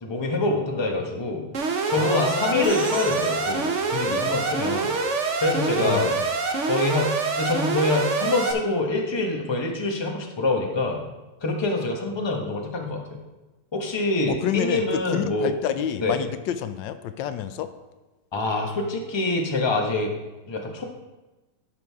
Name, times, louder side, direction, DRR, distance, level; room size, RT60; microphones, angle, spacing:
voice 1, 0.0-1.4 1.9-4.9 5.4-6.1 6.7-7.1 7.4-11.0 11.4-13.2 13.7-15.6 16.0-16.2 18.3-20.1 20.5-20.8, left 2 dB, 20° left, 1 dB, 0.9 m, -25 dB
Alarm, 1.5-8.5, right 4 dB, 50° right, 1.0 m, -25 dB
voice 2, 1.9-2.7 5.8-6.3 14.3-17.7, left 9 dB, 85° left, 10 dB, 1.3 m, -29 dB
sound 1, 2.6-6.2, right 2 dB, 70° right, 3.7 m, -41 dB
11.5 x 6.1 x 3.6 m, 1.1 s
omnidirectional pair, 1.9 m